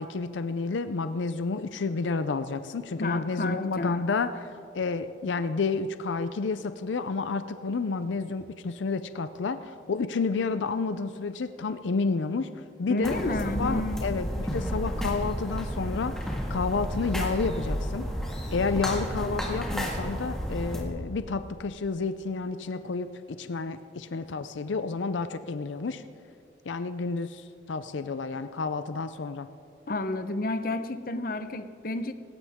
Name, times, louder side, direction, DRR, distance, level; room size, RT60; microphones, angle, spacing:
voice 1, 0.0-13.2 13.6-18.1 18.5-26.0 26.7-29.5, left 4 dB, 85° left, 11 dB, 0.5 m, -30 dB
voice 2, 3.0-4.1 12.9-14.0 29.9-32.1, left 2 dB, 50° left, 10 dB, 0.7 m, -31 dB
sound 1, 13.0-20.8, equal, 5° left, 1.8 m, -31 dB
18.5 x 17.5 x 3.6 m, 2.5 s
head